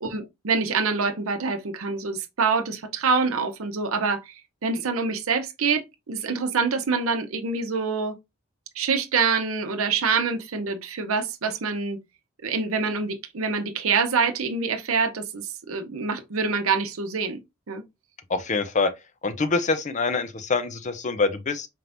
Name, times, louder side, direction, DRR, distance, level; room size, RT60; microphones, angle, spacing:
voice 1, 0.0-4.2 4.6-8.1 8.8-12.0 12.4-17.4 17.7-17.8, right 5 dB, 90° right, 0.7 m, -25 dB
voice 2, 18.3-18.9 19.2-21.7, left 4 dB, 35° left, 0.5 m, -25 dB
4.4 x 3.5 x 2.5 m
head